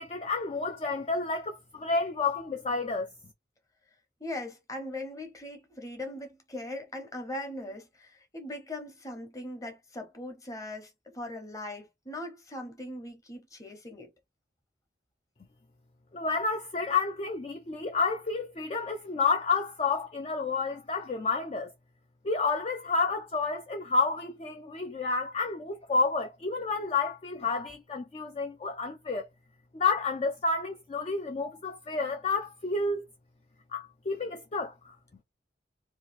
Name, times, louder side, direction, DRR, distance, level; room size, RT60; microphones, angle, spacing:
voice 1, 0.0-3.1 16.1-21.7 22.2-29.3 29.7-33.1 33.7-34.9, left 4 dB, 35° left, 0.4 m, -30 dB
voice 2, 4.2-14.1, left 1 dB, 20° left, 0.9 m, -40 dB
3.0 x 2.4 x 3.1 m
head